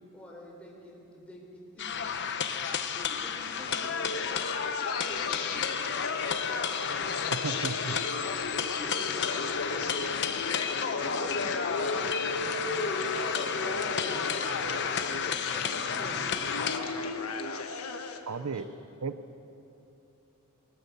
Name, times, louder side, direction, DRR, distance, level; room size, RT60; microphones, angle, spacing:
voice 1, 0.0-2.3 2.9-4.2 4.7-5.9 8.4-10.5 11.0-14.4 15.5-16.4 18.3-18.6, equal, 5° left, -3 dB, 4.1 m, -47 dB
sound 1, 1.8-16.8, left 7 dB, 50° left, 1.0 m, -32 dB
sound 2, 3.4-18.2, left 3 dB, 70° left, 1.3 m, -35 dB
voice 2, 7.3-8.0 18.3-18.7 19.0-19.2, right 4 dB, 80° right, 12 dB, 0.7 m, -34 dB
20.5 x 19.0 x 7.0 m, 3.0 s
head